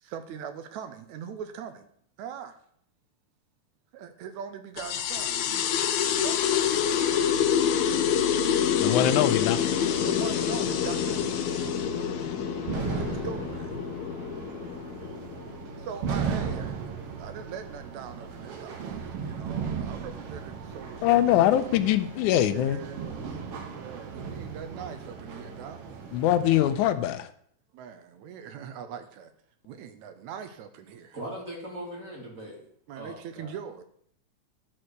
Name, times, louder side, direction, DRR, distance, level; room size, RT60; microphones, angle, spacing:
voice 1, 0.0-1.9 2.2-2.6 3.9-6.9 8.2-8.5 10.1-11.2 13.0-13.8 15.8-16.8 17.2-21.6 22.4-23.2 23.7-25.8 27.7-29.3 29.7-31.2 32.9-33.8, right 7 dB, 80° right, 9 dB, 2.0 m, -41 dB
sound 1, 4.8-15.8, left 8 dB, 70° left, 1.9 m, -27 dB
voice 2, 8.8-9.7 21.0-22.8 26.1-27.3, left 12 dB, 90° left, 12 dB, 2.0 m, -23 dB
sound 2, 9.7-26.9, right 6 dB, 60° right, 1.9 m, -37 dB
voice 3, 31.1-32.6 32.9-33.6, right 1 dB, 25° right, -1 dB, 2.5 m, -39 dB
11.0 x 4.4 x 6.5 m, 0.65 s
omnidirectional pair, 3.5 m